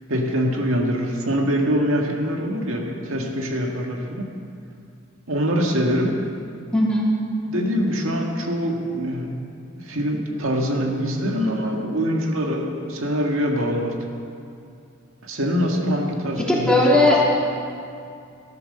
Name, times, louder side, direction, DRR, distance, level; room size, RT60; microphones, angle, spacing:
voice 1, 0.1-4.3 5.3-6.2 7.5-9.5 9.7-14.1 15.2-17.1, equal, 90° right, 1 dB, 1.8 m, -24 dB
voice 2, 6.7-7.1 16.4-17.3, left 2 dB, 5° left, -5 dB, 3.0 m, -17 dB
13.5 x 12.5 x 6.6 m, 2.4 s
head